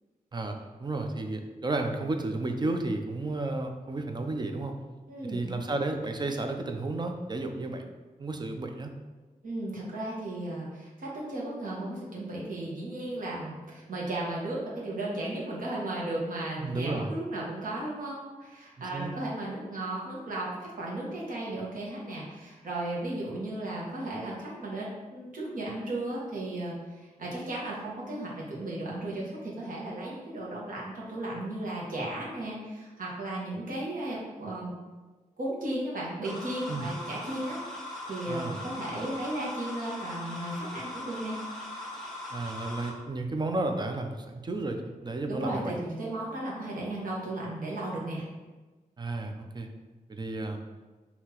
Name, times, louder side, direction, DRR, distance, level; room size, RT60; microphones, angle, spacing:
voice 1, 0.3-4.7 5.2-7.9 8.2-8.9 16.6-17.1 18.8-19.1 36.7-36.9 38.3-38.6 42.3-45.7 49.0-49.7 50.1-50.6, right 2 dB, 30° right, 4 dB, 0.4 m, -32 dB
voice 2, 5.1-5.5 9.4-34.7 35.4-41.4 45.3-48.2, right 1 dB, 70° right, -5 dB, 1.3 m, -35 dB
sound 1, 36.2-42.9, left 1 dB, 5° left, 1.0 m, -40 dB
5.6 x 2.8 x 2.9 m, 1.3 s
wide cardioid pair, 125°, 14 cm